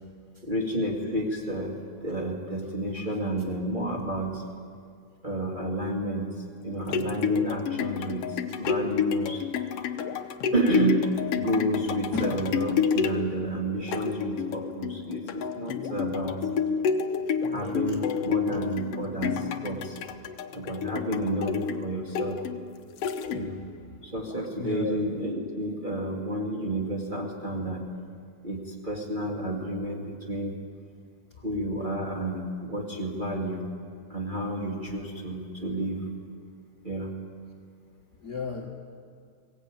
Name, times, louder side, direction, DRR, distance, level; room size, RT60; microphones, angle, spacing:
voice 1, 0.4-4.4 5.2-6.3 6.6-9.4 10.5-16.5 17.4-20.0 20.5-22.4 23.3-23.6 24.0-27.8 28.4-30.6 31.4-33.6 34.1-36.0 36.8-37.1, right 1 dB, 20° right, -2 dB, 2.0 m, -30 dB
sound 1, 6.6-23.7 24.3-24.4, left 6 dB, 65° left, 1.7 m, -30 dB
voice 2, 10.0-10.3 12.1-12.3 24.5-25.0 38.2-38.7, left 4 dB, 40° left, -1 dB, 1.7 m, -34 dB
22.0 x 18.0 x 8.9 m, 2.2 s
omnidirectional pair, 3.5 m